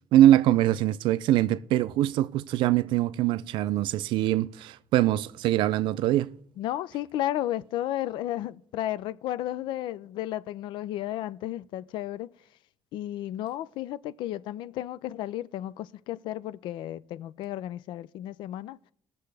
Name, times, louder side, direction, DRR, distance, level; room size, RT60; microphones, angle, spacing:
voice 1, 0.1-6.3, right 13 dB, 85° right, 0.4 m, -23 dB
voice 2, 6.6-12.3 12.9-18.8, left 13 dB, 80° left, 0.4 m, -33 dB
19.5 x 6.8 x 3.3 m
cardioid pair, 155°, 8 cm